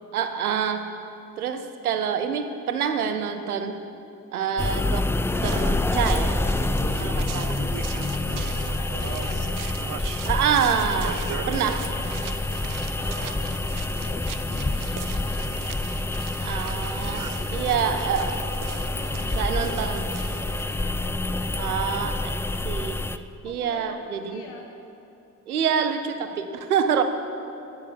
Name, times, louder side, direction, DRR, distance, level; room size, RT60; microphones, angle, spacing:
voice 1, 0.1-0.9 1.4-3.8 4.3-5.1 5.4-6.4 7.0-7.6 10.3-12.0 16.4-18.3 19.4-20.0 21.6-22.4 22.6-23.1 23.4-24.5 25.5-27.0, right 7 dB, 90° right, 9 dB, 0.7 m, -26 dB
sound 1, 4.6-23.2, left 2 dB, 5° left, 0.3 m, -27 dB
sound 2, 5.3-20.6, right 9 dB, 50° right, 0.8 m, -39 dB
voice 2, 7.9-9.6 12.9-13.6 14.0-15.4 17.4-18.3 18.6-21.9 23.4-24.0 24.3-24.6, left 4 dB, 65° left, 1 dB, 2.1 m, -45 dB
11.5 x 10.0 x 7.0 m, 2.7 s
hypercardioid pair, 45°, 43 cm